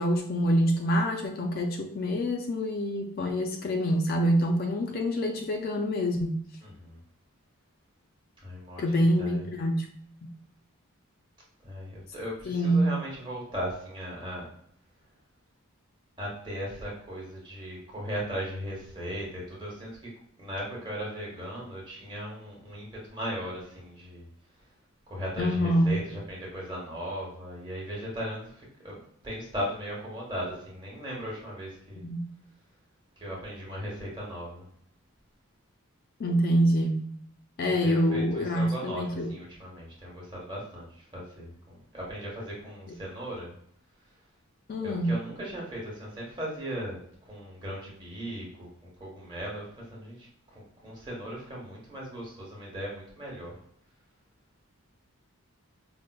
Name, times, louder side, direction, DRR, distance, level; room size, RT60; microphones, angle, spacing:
voice 1, 0.0-6.4 8.8-9.9 12.5-12.9 25.4-26.0 32.0-32.2 36.2-37.0 37.6-39.3 42.9-43.0 44.7-45.2, equal, 40° left, 3 dB, 0.3 m, -26 dB
voice 2, 6.6-7.0 8.4-9.4 11.6-14.4 16.2-19.9 20.4-24.3 25.1-32.0 33.2-34.6 37.8-43.5 44.8-47.0 47.3-53.5, equal, 20° right, -4 dB, 1.0 m, -37 dB
4.9 x 2.0 x 2.2 m, 0.64 s
head